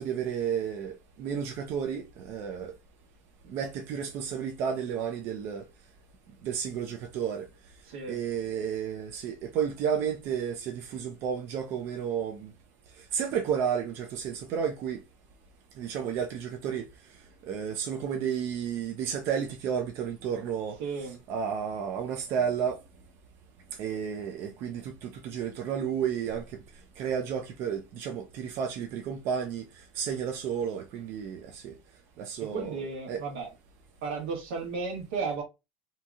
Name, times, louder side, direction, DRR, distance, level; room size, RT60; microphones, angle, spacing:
voice 1, 0.0-2.7 3.5-5.6 6.4-7.4 8.1-12.5 13.1-15.0 15.8-16.9 17.5-20.8 21.3-22.8 23.8-26.4 27.0-29.7 29.9-31.8 32.2-32.7 33.1-33.2, right 7 dB, 55° right, 0.5 m, -32 dB
voice 2, 7.8-8.2 20.8-21.2 32.4-33.5 34.0-35.4, right 4 dB, 80° right, 1.3 m, -34 dB
2.8 x 2.7 x 2.3 m
supercardioid pair, 125°, 5 cm